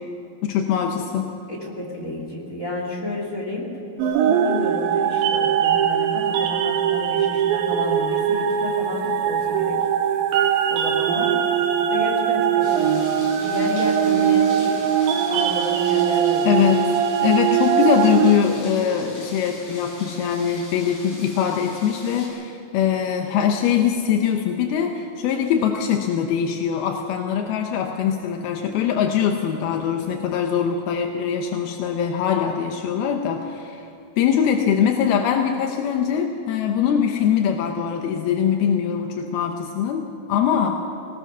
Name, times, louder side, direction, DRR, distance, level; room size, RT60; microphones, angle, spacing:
voice 1, 0.4-1.3 16.5-17.0 17.2-33.9 34.2-40.0 40.3-40.8, left 8 dB, 75° left, 3 dB, 2.3 m, -22 dB
voice 2, 1.5-3.7 4.2-9.8 10.7-11.3 11.9-14.9 15.3-16.7, left 1 dB, 25° left, -2 dB, 2.2 m, -30 dB
sound 1, 4.0-18.4, right 8 dB, 80° right, 3.2 m, -21 dB
sound 2, 12.6-22.3, left 1 dB, 40° left, 7.3 m, -41 dB
22.0 x 19.5 x 6.1 m, 2.7 s
omnidirectional pair, 5.5 m